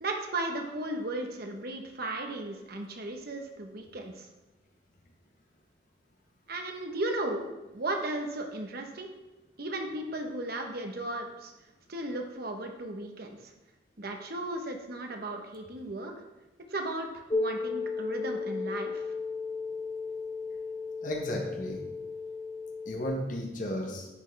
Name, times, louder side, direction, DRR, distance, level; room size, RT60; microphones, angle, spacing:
voice 1, 0.0-4.3 6.5-9.1 9.6-11.5 11.9-13.5 14.0-16.1 16.7-19.0, right 2 dB, 60° right, 3 dB, 1.2 m, -35 dB
sound 1, 17.3-23.1, left 4 dB, 20° left, 0.5 m, -34 dB
voice 2, 21.0-21.8 22.9-24.1, equal, 45° left, 0 dB, 1.3 m, -34 dB
10.0 x 6.2 x 3.4 m, 1.0 s
head